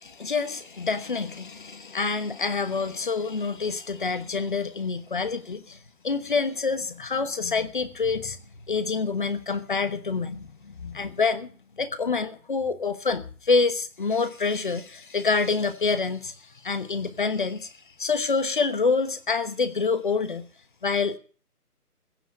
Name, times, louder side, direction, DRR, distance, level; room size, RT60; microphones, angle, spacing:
voice 1, 0.0-5.8 6.0-8.4 8.7-11.5 11.8-16.3 16.6-17.7 18.0-20.5 20.8-21.2, left 4 dB, 35° left, 13 dB, 1.1 m, -27 dB
15.5 x 7.6 x 8.6 m, 0.42 s
figure-of-eight pair, 160°, 46 cm